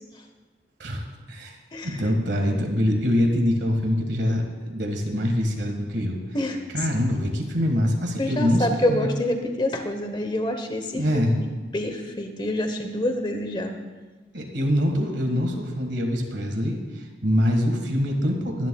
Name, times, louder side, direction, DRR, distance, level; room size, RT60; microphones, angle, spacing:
voice 1, 0.8-1.6 1.8-6.2 6.7-9.1 10.9-11.3 14.3-18.7, equal, 65° right, 2 dB, 1.7 m, -24 dB
voice 2, 8.2-13.8, left 1 dB, 25° left, 6 dB, 1.0 m, -27 dB
22.5 x 10.5 x 2.3 m, 1.3 s
head